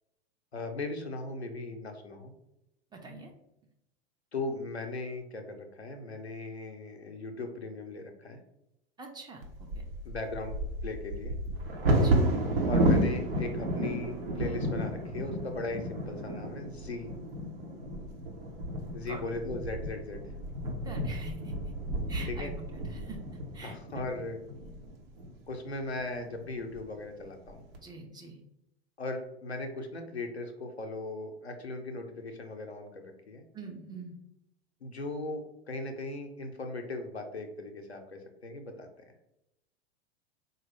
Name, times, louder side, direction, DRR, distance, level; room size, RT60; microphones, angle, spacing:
voice 1, 0.5-2.3 4.3-8.4 10.0-11.3 12.7-17.1 18.9-20.2 22.3-22.5 23.6-24.4 25.5-27.6 29.0-33.4 34.8-38.9, left 2 dB, 90° left, 4 dB, 0.6 m, -38 dB
voice 2, 2.9-3.3 9.0-9.8 11.9-12.3 19.1-19.2 20.8-21.7 22.1-23.2 23.5-24.0 27.8-28.4 33.5-34.2, right 4 dB, 15° right, 1 dB, 0.6 m, -45 dB
Bird vocalization bird call bird song / Wind / Thunder, 9.4-25.3 25.9-26.0 26.4-26.8 27.2-27.8, right 1 dB, 65° right, 0.9 m, -32 dB
4.0 x 2.2 x 3.3 m, 0.85 s
figure-of-eight pair, 85°, 32 cm